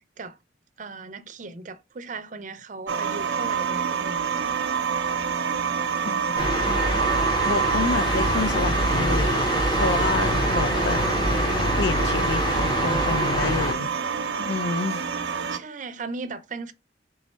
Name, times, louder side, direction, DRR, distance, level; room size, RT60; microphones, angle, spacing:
voice 1, 0.8-4.6 15.5-16.7, right 3 dB, 40° right, 0.5 m, -37 dB
sound 1, 2.9-15.6, right 6 dB, 85° right, 0.6 m, -27 dB
voice 2, 6.1-6.8 7.4-9.4 9.7-11.0 11.8-13.9 14.4-15.0, left 4 dB, 70° left, 0.5 m, -29 dB
sound 2, 6.4-13.7, equal, 25° left, 0.8 m, -25 dB
3.6 x 3.1 x 4.2 m
head